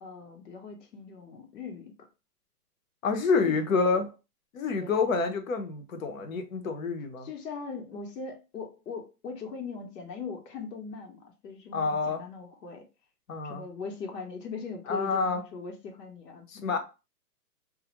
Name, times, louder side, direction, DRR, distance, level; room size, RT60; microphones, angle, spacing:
voice 1, 0.0-1.9 3.4-4.1 4.8-5.0 7.2-12.8 13.4-16.8, left 5 dB, 85° left, 1.0 m, -40 dB
voice 2, 3.0-4.1 4.5-7.3 11.7-12.2 13.3-13.6 14.9-15.4 16.5-16.8, left 4 dB, 55° left, 0.7 m, -28 dB
2.3 x 2.0 x 2.9 m
hypercardioid pair, 165°, 47 cm